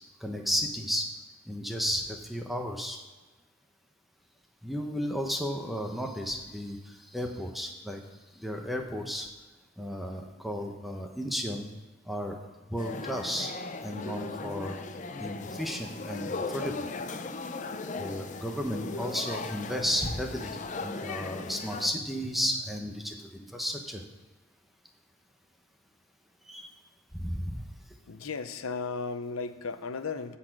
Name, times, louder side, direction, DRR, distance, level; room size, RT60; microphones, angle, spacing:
voice 1, 0.2-1.1 1.5-3.0 4.6-8.0 8.4-9.3 9.8-11.7 12.1-12.4 12.7-13.5 13.8-14.8 15.2-16.3 16.5-16.8 18.0-24.0 26.5-26.7 27.1-27.6, equal, ahead, 3 dB, 0.7 m, -33 dB
sound 1, 12.8-21.9, left 3 dB, 35° left, 0.5 m, -37 dB
voice 2, 28.1-30.4, left 4 dB, 85° left, 10 dB, 0.7 m, -35 dB
10.5 x 4.2 x 7.7 m, 1.2 s
head